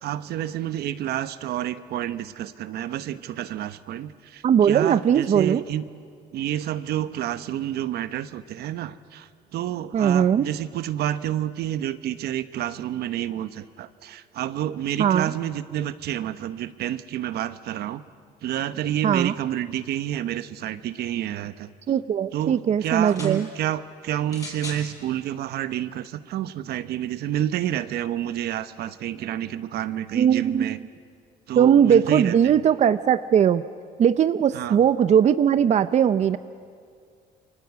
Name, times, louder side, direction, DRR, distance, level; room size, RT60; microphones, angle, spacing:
voice 1, 0.0-5.8 6.3-18.0 18.4-21.7 22.3-30.8 31.5-32.5 34.5-34.8, right 11 dB, 70° right, 13 dB, 1.1 m, -29 dB
voice 2, 4.4-5.6 9.9-10.5 15.0-15.3 19.0-19.3 21.9-23.5 30.1-30.7 31.6-33.6 34.0-36.4, right 8 dB, 45° right, 13 dB, 0.6 m, -19 dB
sound 1, 23.0-23.4 24.3-24.9 25.8-25.9, left 2 dB, 20° left, 6.1 m, -38 dB
28.5 x 24.0 x 8.2 m, 2.2 s
cardioid pair, 110°, 17 cm